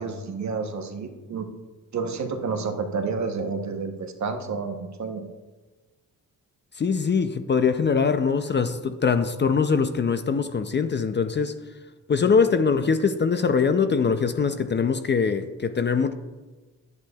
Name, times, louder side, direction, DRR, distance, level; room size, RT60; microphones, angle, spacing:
voice 1, 0.0-1.5 1.9-5.3, right 4 dB, 55° right, 6 dB, 1.0 m, -30 dB
voice 2, 6.7-11.6 12.1-16.1, left 5 dB, 30° left, 9 dB, 0.4 m, -22 dB
10.5 x 8.0 x 2.3 m, 1.3 s
cardioid pair, 90°, 35 cm